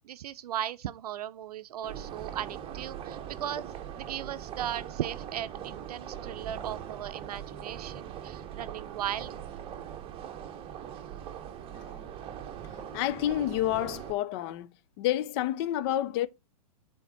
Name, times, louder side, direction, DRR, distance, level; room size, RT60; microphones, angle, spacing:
voice 1, 0.0-9.4, right 11 dB, 70° right, 0.5 m, -37 dB
sound 1, 1.8-14.1, right 9 dB, 25° right, 0.8 m, -41 dB
voice 2, 12.9-14.7 15.0-16.3, left 13 dB, 40° left, 0.5 m, -29 dB
7.0 x 3.6 x 3.9 m
hypercardioid pair, 125°, 20 cm